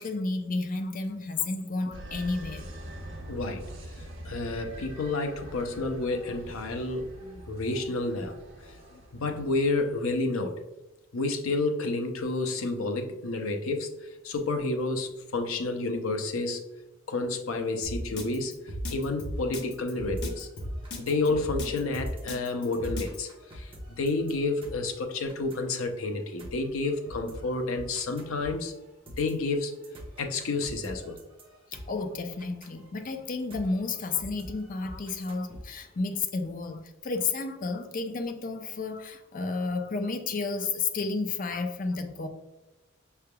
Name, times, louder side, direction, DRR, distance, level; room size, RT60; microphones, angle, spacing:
voice 1, 0.0-2.7 8.9-9.0 20.8-21.1 31.7-42.3, left 3 dB, 40° left, 6 dB, 0.5 m, -32 dB
sound 1, 1.9-10.1, equal, 70° right, 1.0 m, -44 dB
voice 2, 3.3-3.6 4.0-8.3 9.1-10.6 11.1-16.6 17.1-20.5 21.0-28.7 29.2-29.7 30.2-31.2, left 3 dB, 90° left, 5 dB, 0.6 m, -30 dB
Drum kit, 17.8-23.2, left 1 dB, 60° left, 0.9 m, -35 dB
sound 2, 19.3-36.2, equal, 25° right, 0.9 m, -47 dB
5.7 x 3.4 x 2.2 m, 1.0 s
head